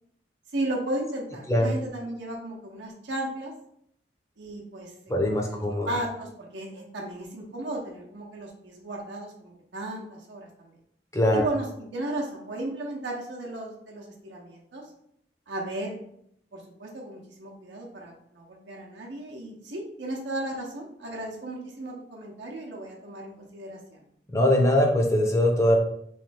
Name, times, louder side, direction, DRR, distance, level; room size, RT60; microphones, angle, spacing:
voice 1, 0.5-3.5 4.4-4.9 5.5-10.7 11.3-14.8 15.5-16.0 16.5-24.0, right 1 dB, 80° right, -2 dB, 0.7 m, -35 dB
voice 2, 5.1-5.9 11.1-11.5 24.3-25.8, left 1 dB, 15° left, 1 dB, 0.6 m, -22 dB
3.1 x 3.1 x 3.3 m, 0.71 s
head